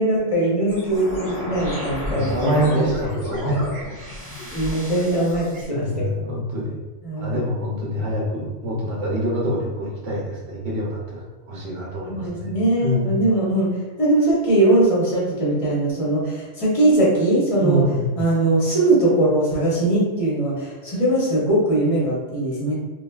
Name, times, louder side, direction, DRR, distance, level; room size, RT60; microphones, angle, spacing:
voice 1, 0.0-2.8 4.5-6.3 7.0-7.4 12.1-13.7 14.0-17.8 18.2-22.7, right 1 dB, 35° left, -6 dB, 0.7 m, -20 dB
sound 1, 0.7-5.7, left 1 dB, ahead, 1.1 m, -32 dB
voice 2, 2.1-3.7 5.7-6.8 7.2-12.5 12.8-13.1 17.6-18.1, equal, 65° right, -3 dB, 0.9 m, -25 dB
3.2 x 2.2 x 2.2 m, 1.2 s
omnidirectional pair, 1.2 m